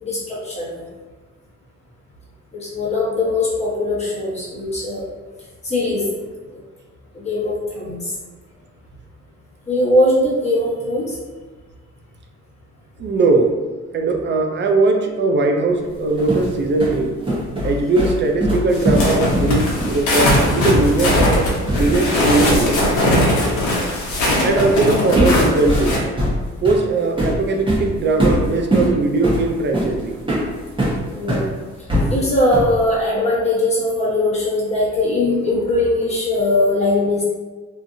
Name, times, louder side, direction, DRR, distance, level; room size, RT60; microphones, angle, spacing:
voice 1, 0.0-0.8 2.5-5.1 5.6-6.0 7.1-8.1 9.7-11.2 31.1-31.5 32.1-37.2, left 1 dB, 20° left, -7 dB, 1.1 m, -20 dB
voice 2, 13.0-13.6 13.9-17.2 17.6-21.4 21.8-22.7 24.4-26.0 26.6-30.2, right 3 dB, 40° right, 3 dB, 0.4 m, -19 dB
sound 1, 15.9-22.1 22.4-22.6 24.5-24.8 25.1-31.5 31.9-32.8, equal, 15° right, 1.0 m, -22 dB
sound 2, 18.7-26.0, left 1 dB, 75° left, 0.9 m, -19 dB
2.7 x 2.5 x 2.6 m, 1.4 s
cardioid pair, 90°, 30 cm